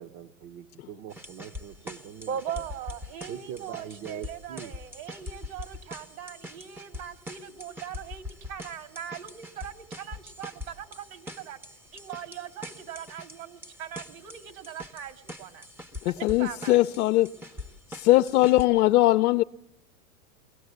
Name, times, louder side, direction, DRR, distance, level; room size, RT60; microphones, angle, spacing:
voice 1, 0.0-2.9 3.3-4.7, right 9 dB, 35° right, 0.8 m, -42 dB
sound 1, 1.1-18.6, left 2 dB, 5° right, 0.7 m, -43 dB
voice 2, 2.3-11.6 11.9-15.7 16.0-16.8, right 9 dB, 65° right, 2.3 m, -40 dB
voice 3, 16.0-17.3 17.9-19.4, left 17 dB, 85° left, 0.7 m, -21 dB
22.5 x 16.0 x 8.0 m
supercardioid pair, 135°, 44 cm